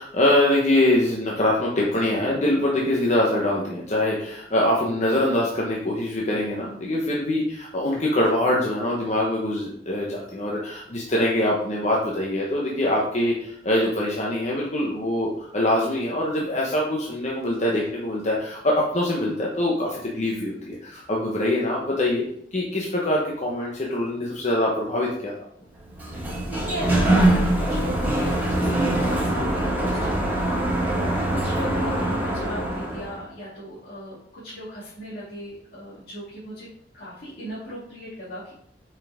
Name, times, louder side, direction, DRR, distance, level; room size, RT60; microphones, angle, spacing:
voice 1, 0.0-22.2 22.5-25.3, left 1 dB, 40° left, -3 dB, 1.1 m, -24 dB
Sliding door, 25.8-33.2, right 1 dB, 10° right, 2.1 m, -23 dB
voice 2, 26.1-36.7 36.9-38.5, equal, 60° left, -10 dB, 3.0 m, -37 dB
7.4 x 5.8 x 3.6 m, 0.70 s
head